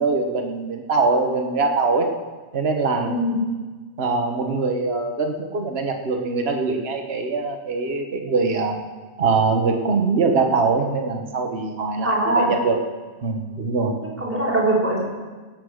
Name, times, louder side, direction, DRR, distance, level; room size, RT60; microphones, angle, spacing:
voice 1, 0.0-2.1 2.5-3.1 4.0-8.8 9.2-12.7 13.2-14.0, right 4 dB, 65° right, 3 dB, 1.5 m, -22 dB
voice 2, 3.1-3.4 12.0-12.5 14.2-15.0, right 1 dB, 10° right, -6 dB, 3.7 m, -21 dB
16.5 x 8.1 x 6.4 m, 1.3 s
omnidirectional pair, 1.2 m